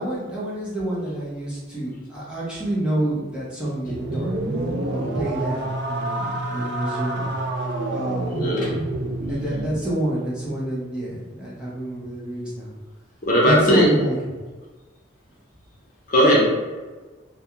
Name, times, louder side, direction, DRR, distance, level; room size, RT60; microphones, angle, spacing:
voice 1, 0.0-4.4 4.9-7.3 7.9-8.8 9.3-12.7 13.4-14.2, right 1 dB, 5° right, -8 dB, 0.7 m, -28 dB
sound 1, 3.8-9.8, right 2 dB, 55° right, 0.3 m, -28 dB
voice 2, 8.3-8.7 13.2-13.9 16.1-16.5, equal, 40° left, -4 dB, 0.7 m, -17 dB
2.3 x 2.3 x 2.9 m, 1.3 s
head